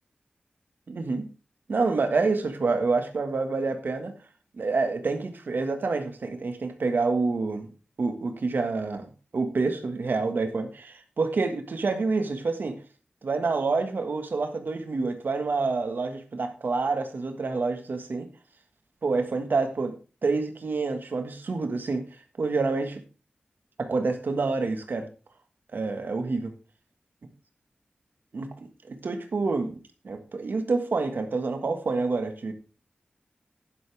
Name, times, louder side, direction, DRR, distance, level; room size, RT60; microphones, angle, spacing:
voice 1, 0.9-1.3 1.7-4.1 4.5-7.7 8.0-9.1 9.3-12.8 13.2-18.3 19.0-19.9 20.2-22.0 22.4-23.0 23.8-25.1 25.7-26.5 28.3-28.5 28.9-29.8 30.0-32.5, right 3 dB, 75° right, 7 dB, 1.6 m, -27 dB
11.0 x 11.0 x 3.4 m, 0.34 s
wide cardioid pair, 75°, 3 cm